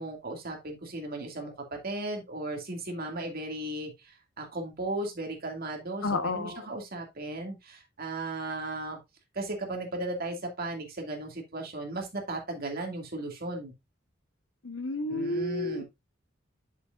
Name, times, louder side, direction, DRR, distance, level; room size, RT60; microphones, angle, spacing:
voice 1, 0.0-9.0 9.3-13.7 15.1-15.8, right 2 dB, 50° right, 2.4 m, -36 dB
voice 2, 6.0-6.6 14.6-15.8, left 2 dB, 80° left, 1.1 m, -31 dB
8.1 x 6.9 x 2.5 m
head